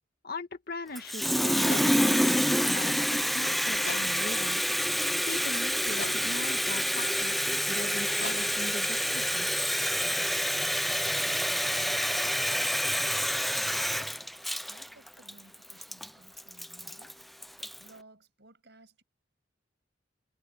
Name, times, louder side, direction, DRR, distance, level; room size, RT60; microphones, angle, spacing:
voice 1, 0.2-2.4 2.7-4.6 5.3-9.5, left 2 dB, 55° left, 2.1 m, -40 dB
Water tap faucet, 0.9-17.9, equal, ahead, 0.4 m, -28 dB
sound 1, 1.6-10.3, left 4 dB, 70° left, 1.3 m, -47 dB
voice 2, 11.5-12.5 13.2-17.2 17.6-19.0, right 2 dB, 65° right, 7.6 m, -57 dB
head